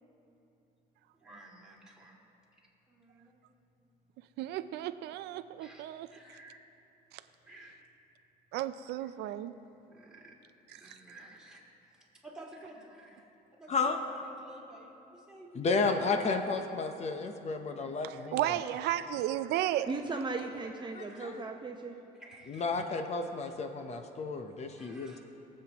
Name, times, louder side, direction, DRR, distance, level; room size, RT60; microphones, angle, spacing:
voice 1, 1.2-2.2 2.9-3.4 5.6-5.8 6.1-6.6 7.4-7.7 9.0-9.1 9.9-10.3 10.7-11.6 12.2-13.3 13.5-16.4 19.0-19.3 19.6-19.9 20.8-21.3 22.2-22.7 24.8-25.2, right 1 dB, 5° right, -4 dB, 2.3 m, -53 dB
voice 2, 4.4-6.1 8.5-9.5 10.7-10.8 18.0-19.9, right 13 dB, 80° right, 11 dB, 0.4 m, -33 dB
voice 3, 13.7-14.0 15.5-18.5 20.9-21.4 22.5-25.2, left 4 dB, 40° left, 6 dB, 0.8 m, -32 dB
voice 4, 19.9-22.0, right 3 dB, 25° right, 2 dB, 0.7 m, -37 dB
22.5 x 7.7 x 3.0 m, 3.0 s
cardioid pair, 110°, 17 cm